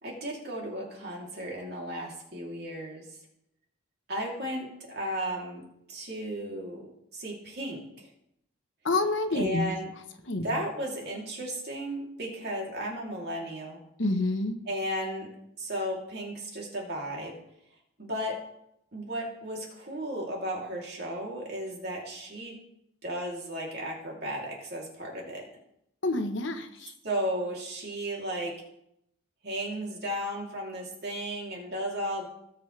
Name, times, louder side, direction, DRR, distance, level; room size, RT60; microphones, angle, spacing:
voice 1, 0.0-3.0 4.1-5.6 5.9-6.9 7.1-8.1 9.3-9.9 10.4-13.8 14.7-15.3 15.6-17.3 18.0-18.4 18.9-22.6 23.0-25.4 27.0-28.5 29.4-32.3, equal, 55° right, -2 dB, 3.1 m, -34 dB
voice 2, 8.8-9.7 10.2-10.5 14.0-14.6 26.0-26.9, left 2 dB, 70° left, 7 dB, 1.2 m, -28 dB
18.5 x 7.3 x 3.4 m, 0.79 s
head